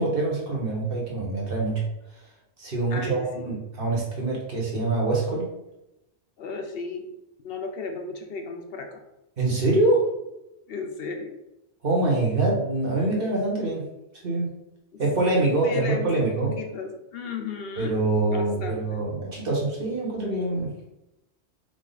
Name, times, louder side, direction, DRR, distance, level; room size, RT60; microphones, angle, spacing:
voice 1, 0.0-1.8 2.6-5.5 9.4-10.1 11.8-13.8 14.2-14.5 15.0-16.5 17.8-20.7, right 2 dB, 55° right, -3 dB, 1.3 m, -25 dB
voice 2, 2.9-3.5 6.4-7.1 7.4-9.0 10.7-11.4 14.9-15.0 15.6-18.0 18.3-19.0, left 4 dB, 65° left, 4 dB, 0.8 m, -34 dB
5.0 x 2.3 x 4.0 m, 0.91 s
omnidirectional pair, 1.1 m